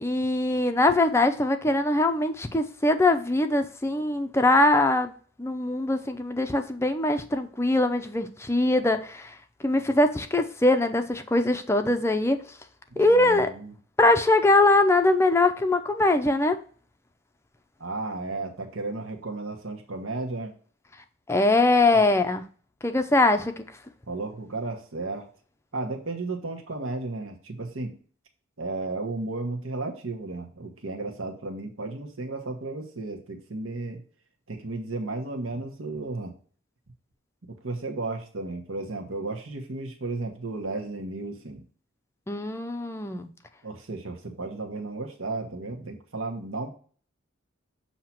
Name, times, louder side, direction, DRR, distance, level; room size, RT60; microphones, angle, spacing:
voice 1, 0.0-5.1 5.4-9.3 9.6-12.4 13.0-13.5 14.0-16.6 21.3-22.4 22.8-23.6 42.3-43.3, left 2 dB, 15° left, 7 dB, 0.5 m, -22 dB
voice 2, 12.9-13.7 17.8-20.5 24.1-25.3 25.7-28.0 28.6-34.0 34.5-36.3 37.5-41.6 43.6-46.7, right 3 dB, 75° right, 3 dB, 1.2 m, -34 dB
7.3 x 2.9 x 5.8 m, 0.43 s
head